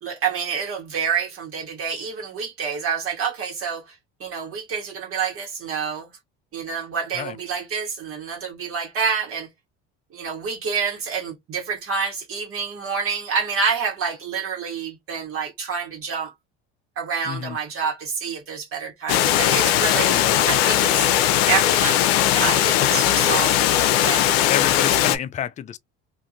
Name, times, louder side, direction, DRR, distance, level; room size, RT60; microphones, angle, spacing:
voice 1, 0.0-3.9 4.2-6.1 6.5-9.5 10.1-16.3 17.0-20.2 20.4-23.6 24.0-24.5, right 6 dB, 45° right, 1.3 m, -28 dB
voice 2, 17.3-17.6 20.1-20.4 24.5-25.8, left 10 dB, 25° left, 0.3 m, -29 dB
Water, 19.1-25.2, left 12 dB, 80° left, 0.5 m, -19 dB
2.5 x 2.5 x 2.8 m
hypercardioid pair, 80°, 30 cm